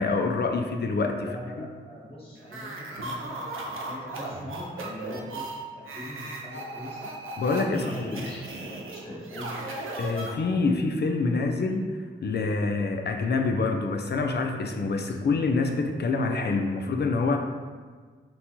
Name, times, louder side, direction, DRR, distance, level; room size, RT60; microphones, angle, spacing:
voice 1, 0.0-1.3 1.6-1.7 7.4-8.3 10.0-11.8 12.2-17.4, left 3 dB, 55° left, 4 dB, 0.4 m, -26 dB
voice 2, 1.2-3.5 3.7-5.5 5.7-7.1 7.7-9.6, left 1 dB, 25° left, -7 dB, 1.4 m, -41 dB
sound 1, 2.4-10.7, right 2 dB, 75° right, 0.5 m, -37 dB
4.0 x 2.2 x 2.8 m, 1.5 s
cardioid pair, 45°, 21 cm